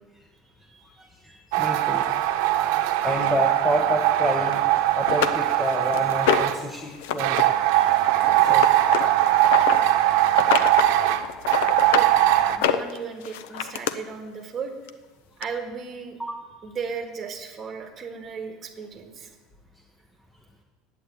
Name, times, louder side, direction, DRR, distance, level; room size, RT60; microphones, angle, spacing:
voice 1, 0.4-1.4 7.7-7.9 9.1-9.3 11.9-12.1 12.6-14.7 15.4-16.2 16.6-19.3, right 5 dB, 20° right, 3 dB, 1.6 m, -36 dB
voice 2, 1.0-2.2 2.8-7.5 7.9-8.0 8.4-8.8 10.0-10.1 11.3-11.4 11.8-12.0 12.6-12.8 16.2-16.4, equal, 5° left, 2 dB, 0.8 m, -30 dB
sound 1, 1.5-6.6 7.2-12.6, right 14 dB, 70° right, 0.8 m, -21 dB
sound 2, 4.5-4.6 5.1-6.6 7.0-7.4 7.7-9.8 10.3-10.9 11.2-12.1 12.5-13.9 14.9-15.0 15.4-15.5, left 11 dB, 90° left, 0.7 m, -26 dB
10.0 x 8.9 x 8.3 m, 1.3 s
cardioid pair, 170°, 0 cm